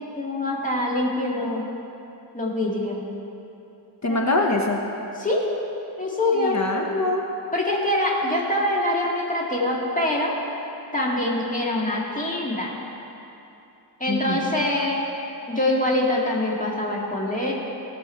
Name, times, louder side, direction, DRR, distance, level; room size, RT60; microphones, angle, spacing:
voice 1, 0.0-1.7 2.3-3.0 4.1-4.2 5.2-5.6 6.0-6.6 7.5-10.3 10.9-12.7 14.0-15.0 15.5-17.5, left 1 dB, 20° left, -3 dB, 2.1 m, -24 dB
voice 2, 4.0-4.8 6.4-7.3 14.1-14.5, left 2 dB, 40° left, 1 dB, 1.0 m, -24 dB
18.0 x 6.4 x 4.4 m, 2.8 s
wide cardioid pair, 75°, 42 cm